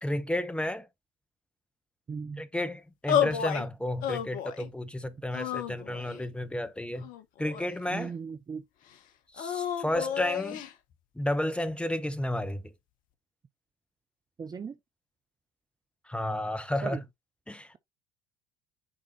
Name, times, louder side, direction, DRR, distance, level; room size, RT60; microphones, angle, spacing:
voice 1, 0.0-0.9 2.4-7.1 7.4-8.1 9.3-10.6 11.2-12.7 16.1-17.0 17.5-17.8, left 1 dB, 5° left, 1.0 m, -32 dB
voice 2, 2.1-2.4 7.9-8.6 14.4-14.8 16.8-17.0, right 6 dB, 25° right, 0.6 m, -37 dB
sound 1, 3.1-3.7 4.0-4.7 5.3-6.2 7.0-8.0 9.4-10.7, left 9 dB, 55° left, 0.9 m, -31 dB
9.7 x 3.6 x 2.8 m
figure-of-eight pair, 60°, 17 cm